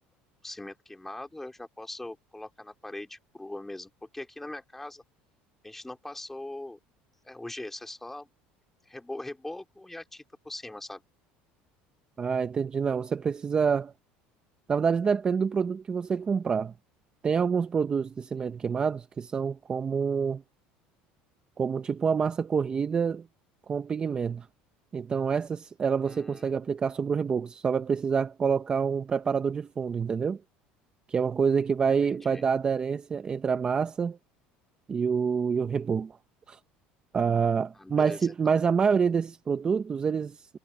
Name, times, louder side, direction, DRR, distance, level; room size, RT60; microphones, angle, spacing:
voice 1, 0.4-5.0 5.6-6.8 7.2-8.3 8.8-11.0 26.0-26.6 32.0-32.4 37.8-38.6, left 1 dB, 5° left, 3.7 m, -41 dB
voice 2, 12.2-13.9 14.7-16.7 17.2-20.4 21.6-23.3 23.7-24.5 24.9-30.4 31.1-34.2 34.9-36.2 36.5-36.6 37.1-40.6, right 6 dB, 25° right, 0.7 m, -27 dB
cardioid pair, 135°, 4 cm